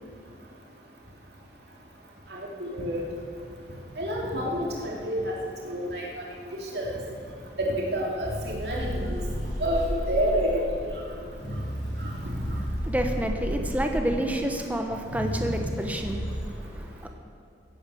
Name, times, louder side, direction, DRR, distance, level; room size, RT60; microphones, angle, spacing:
voice 1, 2.3-3.0 4.0-5.4 5.6-6.2 6.7-7.0 7.6-9.2 9.6-11.0 12.0-12.1, equal, 65° right, -2 dB, 2.9 m, -29 dB
sound 1, 8.2-16.4, equal, 80° left, 4.0 m, -33 dB
voice 2, 12.9-17.1, right 1 dB, 10° right, 4 dB, 0.9 m, -29 dB
16.5 x 8.9 x 7.0 m, 2.4 s
head